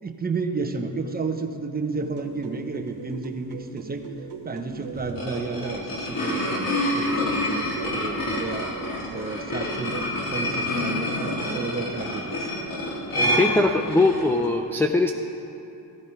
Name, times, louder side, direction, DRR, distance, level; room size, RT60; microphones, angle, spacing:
voice 1, 0.0-4.0 4.4-8.7 9.1-10.0 10.3-12.5 13.1-13.8, right 4 dB, 20° right, 5 dB, 1.0 m, -32 dB
sound 1, 1.9-14.6, right 6 dB, 90° right, 1.4 m, -41 dB
sound 2, 4.9-14.3, left 1 dB, 55° left, 3.5 m, -27 dB
voice 2, 13.4-15.1, left 2 dB, 5° left, 4 dB, 0.4 m, -21 dB
15.5 x 15.5 x 4.7 m, 2.8 s
cardioid pair, 130°, 41 cm